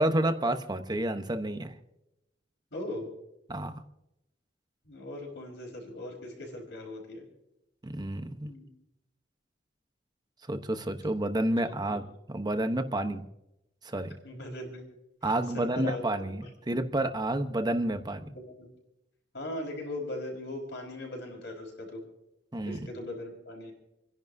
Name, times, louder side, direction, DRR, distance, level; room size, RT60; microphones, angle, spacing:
voice 1, 0.0-1.7 3.5-3.8 7.8-8.5 10.5-13.2 13.8-14.1 15.2-18.3 22.5-22.9, right 1 dB, 25° right, 8 dB, 0.9 m, -30 dB
voice 2, 2.7-3.1 4.8-7.3 8.4-8.7 11.6-12.0 14.2-14.8 15.2-16.1 16.4-16.5 18.6-18.7 19.3-22.0 22.6-23.7, left 1 dB, 70° left, 0 dB, 4.6 m, -39 dB
30.0 x 11.0 x 2.7 m, 0.90 s
head